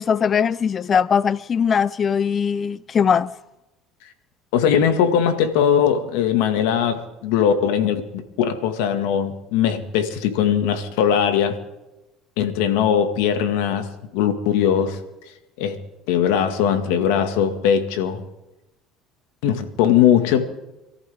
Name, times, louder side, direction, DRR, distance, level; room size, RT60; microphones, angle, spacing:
voice 1, 0.0-3.3, left 7 dB, 40° left, 0.4 m, -20 dB
voice 2, 4.5-11.6 12.4-13.9 14.1-15.0 15.6-15.8 16.1-18.2 19.4-20.4, left 8 dB, 80° left, 1.9 m, -20 dB
27.0 x 14.0 x 3.6 m
supercardioid pair, 85°, 0 cm